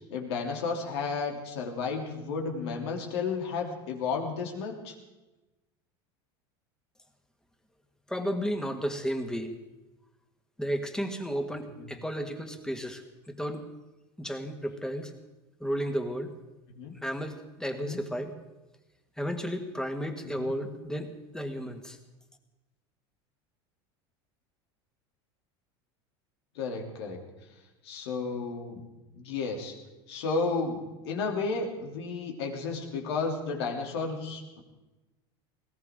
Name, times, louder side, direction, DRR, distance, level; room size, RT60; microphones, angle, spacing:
voice 1, 0.1-4.9 11.8-11.9 16.7-16.9 17.8-18.0 20.2-20.5 26.5-27.2 27.8-28.8 29.1-29.7 30.1-34.6, left 4 dB, 80° left, 2 dB, 3.1 m, -33 dB
voice 2, 8.1-9.6 10.6-13.0 13.3-13.6 14.2-15.1 15.6-16.3 17.0-18.3 19.2-22.0, equal, 5° left, 5 dB, 1.9 m, -33 dB
20.5 x 17.0 x 3.8 m, 1.1 s
supercardioid pair, 105°, 14 cm